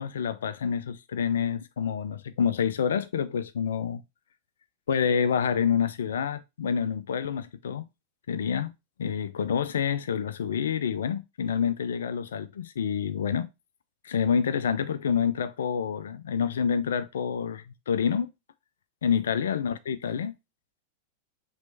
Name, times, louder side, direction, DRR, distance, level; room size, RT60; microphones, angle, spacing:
voice 1, 0.0-4.0 4.9-7.9 8.3-8.7 9.0-13.5 14.0-18.3 19.0-20.3, left 7 dB, 65° left, 0.3 m, -28 dB
6.1 x 3.0 x 2.7 m
figure-of-eight pair, 90°, 0 cm